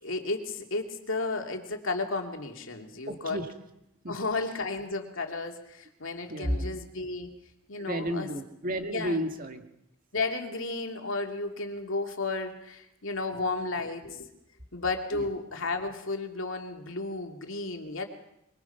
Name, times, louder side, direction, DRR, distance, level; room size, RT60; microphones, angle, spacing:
voice 1, 0.0-3.4 4.1-7.3 7.7-8.3 8.8-9.2 10.1-14.3 14.7-18.1, left 3 dB, 60° left, 4 dB, 2.8 m, -33 dB
voice 2, 3.1-3.5 4.0-4.2 6.3-6.8 7.8-9.6 15.1-15.3, equal, 40° right, 6 dB, 2.0 m, -32 dB
25.5 x 24.0 x 5.9 m, 0.81 s
head